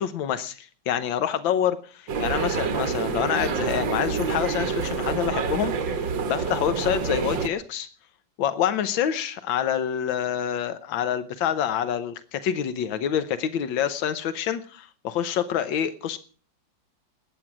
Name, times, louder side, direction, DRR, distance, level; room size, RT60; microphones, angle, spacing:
voice 1, 0.0-7.9 8.4-16.2, left 9 dB, 90° left, 12 dB, 1.6 m, -27 dB
sound 1, 2.1-7.5, right 5 dB, 80° right, 2.1 m, -27 dB
20.0 x 9.1 x 6.1 m, 0.42 s
omnidirectional pair, 2.0 m